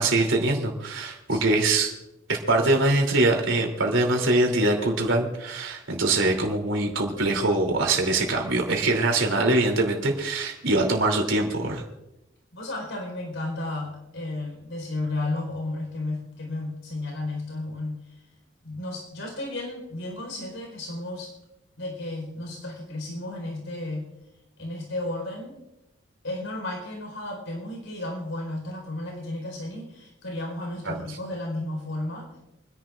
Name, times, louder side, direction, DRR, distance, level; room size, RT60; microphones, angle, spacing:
voice 1, 0.0-1.9 2.3-11.8 30.8-31.0, right 2 dB, 80° right, 2 dB, 3.0 m, -23 dB
voice 2, 1.3-1.6 12.5-18.0 18.6-21.3 21.8-24.1 24.6-25.6 26.2-32.3, left 2 dB, 85° left, 1 dB, 4.2 m, -33 dB
29.0 x 10.5 x 2.5 m, 0.91 s
head